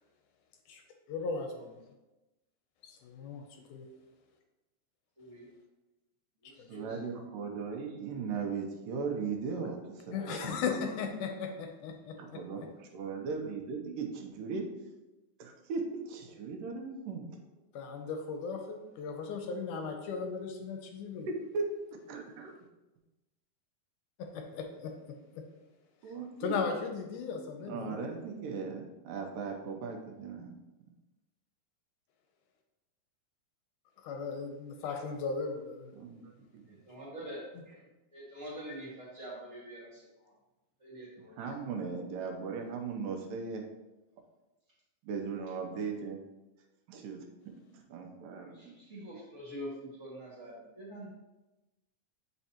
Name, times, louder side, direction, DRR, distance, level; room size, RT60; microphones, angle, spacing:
voice 1, 1.1-1.8 2.8-3.4 3.7-3.9 6.6-6.9 10.1-12.4 17.8-21.3 24.2-25.5 26.4-28.0 34.0-35.9, left 5 dB, 75° left, 4 dB, 2.1 m, -37 dB
voice 2, 5.2-5.5 6.4-7.1 36.7-40.3 40.8-41.4 48.2-51.1, right 1 dB, 30° right, -6 dB, 1.5 m, -46 dB
voice 3, 6.7-10.7 12.2-14.7 15.4-17.2 21.3-22.6 26.0-26.6 27.6-30.5 35.9-36.8 41.4-43.6 45.0-46.2 46.9-47.3 47.7-48.8, right 5 dB, 85° right, 3 dB, 2.4 m, -38 dB
8.2 x 5.4 x 2.9 m, 1.0 s
omnidirectional pair, 3.8 m